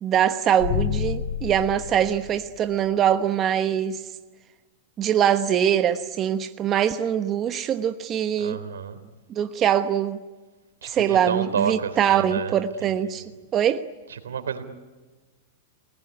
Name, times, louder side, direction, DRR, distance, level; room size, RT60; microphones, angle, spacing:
voice 1, 0.0-4.0 5.0-8.6 9.3-10.2 10.8-13.2 13.5-13.9, right 9 dB, 30° right, 9 dB, 1.1 m, -23 dB
sound 1, 0.6-2.9, left 9 dB, 65° left, 1.8 m, -29 dB
voice 2, 8.4-9.0 10.8-13.3 14.1-14.6, right 7 dB, 90° right, 9 dB, 3.5 m, -30 dB
29.0 x 19.5 x 9.9 m, 1.3 s
hypercardioid pair, 120°, 0 cm